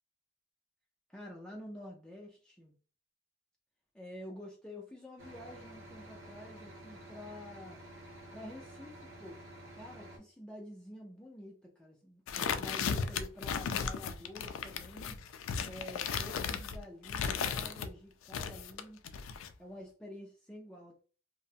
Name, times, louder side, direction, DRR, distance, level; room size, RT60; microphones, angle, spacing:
voice 1, 1.1-2.7 3.9-7.8 8.3-9.4 9.7-15.2 15.7-19.0 19.6-21.0, left 1 dB, 5° left, -2 dB, 0.3 m, -49 dB
sound 1, 5.2-10.2, right 1 dB, 75° right, 0.8 m, -51 dB
sound 2, 12.3-17.9 18.3-19.5, left 6 dB, 85° left, 0.3 m, -35 dB
2.5 x 2.0 x 2.6 m, 0.38 s
head